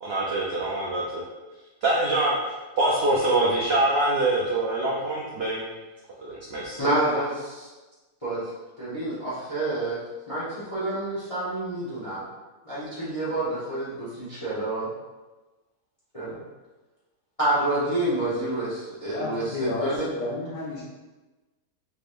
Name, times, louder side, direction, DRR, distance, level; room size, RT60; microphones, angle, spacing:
voice 1, 0.0-1.2 1.8-5.6 6.2-6.8, right 2 dB, 70° right, -5 dB, 0.5 m, -24 dB
voice 2, 6.8-7.7 8.2-8.5 8.8-10.0 10.3-12.2 12.6-14.9 16.1-16.4 17.4-20.1, right 2 dB, 25° left, -9 dB, 0.9 m, -28 dB
voice 3, 19.1-20.8, left 3 dB, 85° left, -6 dB, 1.4 m, -32 dB
4.2 x 3.4 x 2.5 m, 1.2 s
omnidirectional pair, 1.8 m